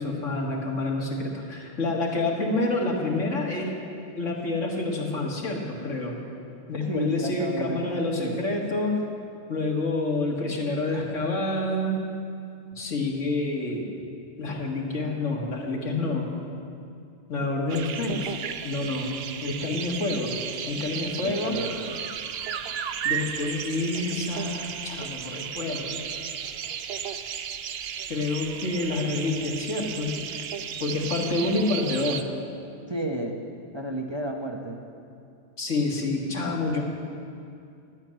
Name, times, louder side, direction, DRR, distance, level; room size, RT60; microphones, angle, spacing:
voice 1, 0.0-3.7 4.2-6.2 6.7-9.0 9.5-12.0 12.8-13.9 14.4-16.3 17.3-18.3 18.6-20.4 20.7-21.6 23.0-26.0 28.1-30.1 30.8-32.3 35.6-36.8, left 2 dB, 85° left, -1 dB, 2.2 m, -28 dB
voice 2, 6.9-8.4 21.2-22.1 32.9-33.4 33.7-34.9, right 1 dB, 25° right, 1 dB, 0.9 m, -32 dB
sound 1, 17.7-32.2, right 8 dB, 60° right, 0.8 m, -34 dB
12.0 x 9.0 x 8.8 m, 2.4 s
omnidirectional pair, 1.3 m